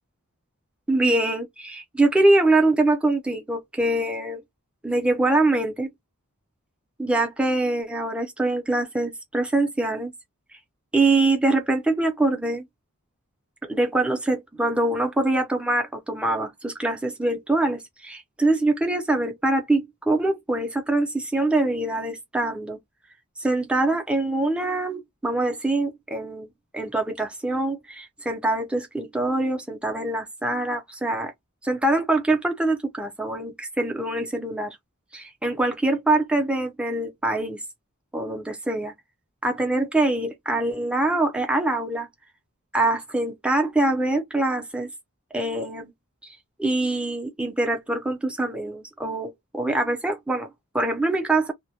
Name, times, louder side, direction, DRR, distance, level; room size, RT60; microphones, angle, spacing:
voice 1, 0.9-4.4 4.8-5.9 7.0-10.1 10.9-12.7 13.6-22.8 23.4-26.5 26.7-31.3 31.6-34.8 35.1-37.6 38.1-38.9 39.4-42.1 42.7-44.9 45.3-45.9 46.6-50.5 50.7-51.5, right 2 dB, 5° right, 0.5 m, -24 dB
2.1 x 2.1 x 2.7 m
head